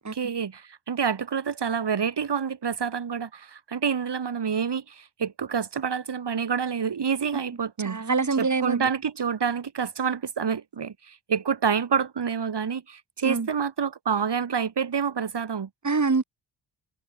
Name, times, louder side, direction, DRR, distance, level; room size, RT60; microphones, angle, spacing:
voice 1, 0.0-8.1 8.4-15.7, right 6 dB, 55° right, 3.4 m, -28 dB
voice 2, 7.8-8.9 13.2-13.5 15.8-16.2, right 4 dB, 35° right, 4.7 m, -25 dB
supercardioid pair, 50°, 49 cm